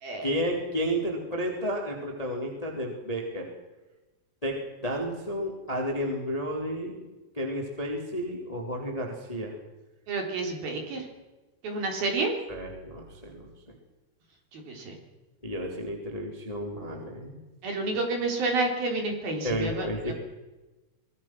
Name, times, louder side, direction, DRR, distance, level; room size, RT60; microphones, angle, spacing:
voice 1, 0.2-3.5 4.4-7.0 7.3-9.6 12.5-13.5 15.4-17.4 19.4-20.1, equal, 10° left, 1 dB, 2.8 m, -32 dB
voice 2, 10.1-11.0 11.6-12.3 14.5-15.0 17.6-20.1, right 3 dB, 50° right, 2 dB, 5.3 m, -29 dB
25.5 x 20.5 x 6.3 m, 1.1 s
omnidirectional pair, 5.8 m